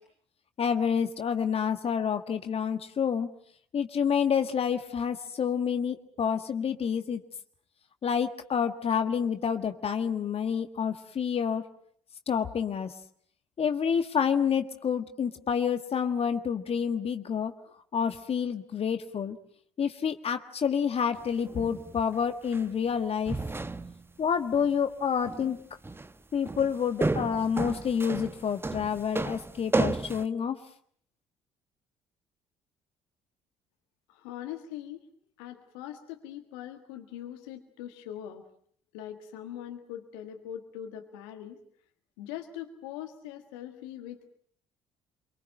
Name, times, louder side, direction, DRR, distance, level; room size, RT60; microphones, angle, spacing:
voice 1, 0.6-3.3 3.7-7.2 8.0-11.6 12.3-12.9 13.6-17.5 17.9-19.4 19.8-23.4 24.2-25.6 26.3-30.6, left 7 dB, 45° left, 8 dB, 1.6 m, -28 dB
sound 1, 21.2-22.0 22.5-22.6 23.3-24.1 24.5-24.7 25.2-25.6 25.8-26.1 26.5-30.2, right 2 dB, 15° right, 1.1 m, -32 dB
voice 2, 34.1-35.0 35.4-38.4 38.9-41.6 42.2-44.3, left 11 dB, 75° left, 5 dB, 1.7 m, -41 dB
25.5 x 24.0 x 7.8 m, 0.62 s
hypercardioid pair, 50°, 14 cm